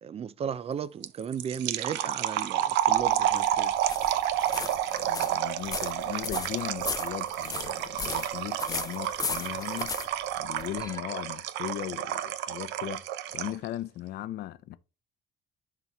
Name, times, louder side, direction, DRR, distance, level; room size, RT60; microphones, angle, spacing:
voice 1, 0.0-3.7, right 8 dB, 35° right, 0.5 m, -35 dB
sound 1, 1.0-13.7, right 12 dB, 90° right, 0.6 m, -30 dB
sound 2, 2.8-11.0, left 5 dB, 20° left, 0.5 m, -37 dB
voice 2, 4.9-9.9 10.4-13.0 13.3-14.8, left 13 dB, 70° left, 0.6 m, -38 dB
11.0 x 4.0 x 3.0 m
cardioid pair, 110°, 17 cm